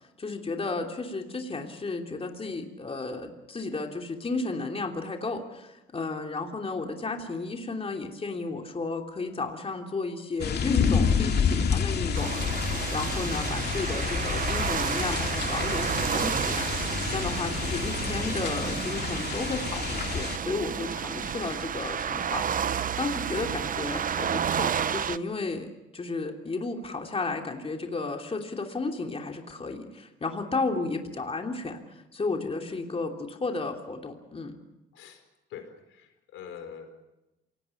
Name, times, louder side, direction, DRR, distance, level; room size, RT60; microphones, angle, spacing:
voice 1, 0.2-12.6 12.9-16.7 17.1-31.8 32.1-34.6, left 3 dB, 30° left, 3 dB, 3.0 m, -33 dB
sound 1, 10.4-20.4, left 6 dB, 55° left, 2.3 m, -29 dB
sound 2, 12.1-25.2, right 8 dB, 45° right, 0.7 m, -31 dB
voice 2, 35.5-37.1, left 7 dB, 85° left, 7 dB, 4.5 m, -44 dB
27.0 x 18.5 x 7.2 m, 0.98 s
cardioid pair, 90°, 20 cm